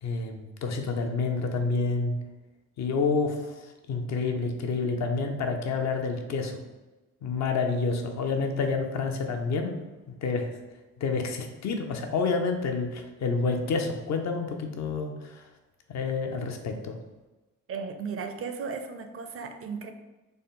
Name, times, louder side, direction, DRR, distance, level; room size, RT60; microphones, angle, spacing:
voice 1, 0.0-2.1 2.8-6.6 7.2-9.8 10.2-10.6 11.0-15.5 15.9-17.0, left 4 dB, 65° left, 4 dB, 0.6 m, -29 dB
voice 2, 17.7-19.9, right 5 dB, 50° right, 7 dB, 0.4 m, -35 dB
3.9 x 2.0 x 3.7 m, 1.1 s
cardioid pair, 90°, 30 cm